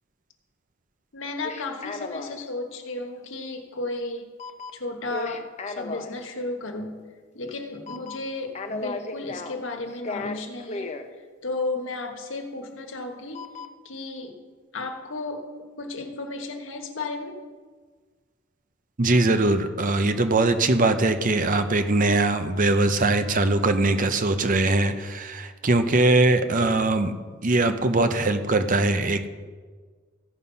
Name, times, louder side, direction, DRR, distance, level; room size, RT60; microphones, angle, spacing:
voice 1, 1.1-4.3 4.7-7.1 7.3-10.9 11.4-13.4 13.8-14.4 14.7-15.5 15.8-17.4, left 2 dB, 75° left, 4 dB, 1.3 m, -33 dB
sound 1, 1.4-2.5 4.4-6.2 7.5-7.6 7.9-8.3 8.6-9.6 9.9-11.0 13.3-13.7, left 3 dB, 35° left, 0.7 m, -34 dB
voice 2, 19.0-27.1 27.4-29.3, right 2 dB, 45° right, 9 dB, 0.7 m, -21 dB
15.0 x 5.5 x 5.5 m, 1.5 s
head